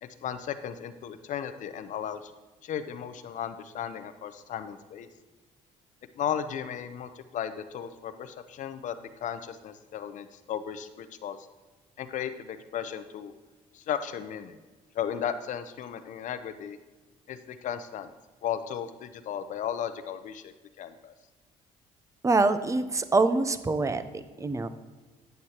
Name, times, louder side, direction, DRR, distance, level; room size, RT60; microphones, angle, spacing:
voice 1, 0.0-2.3 2.6-5.1 6.1-9.0 9.2-11.4 12.0-13.3 13.7-14.6 14.9-16.8 17.3-18.1 18.4-21.1, left 9 dB, 65° left, 11 dB, 0.6 m, -35 dB
voice 2, 22.2-24.7, right 3 dB, 20° right, 11 dB, 0.6 m, -25 dB
9.1 x 8.0 x 2.9 m, 1.3 s
cardioid pair, 85°, 14 cm